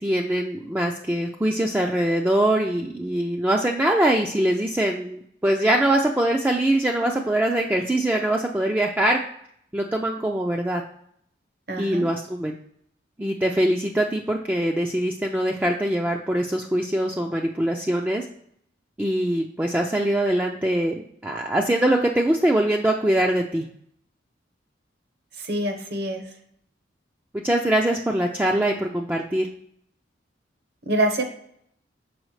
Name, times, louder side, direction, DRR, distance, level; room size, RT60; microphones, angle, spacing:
voice 1, 0.0-9.2 9.7-10.8 11.8-12.6 13.2-18.3 19.0-23.7 27.4-29.5, right 1 dB, 10° right, 1 dB, 0.3 m, -23 dB
voice 2, 11.7-12.1 25.4-26.2 30.9-31.2, right 1 dB, 60° right, 5 dB, 1.0 m, -25 dB
6.2 x 4.8 x 3.2 m, 0.69 s
head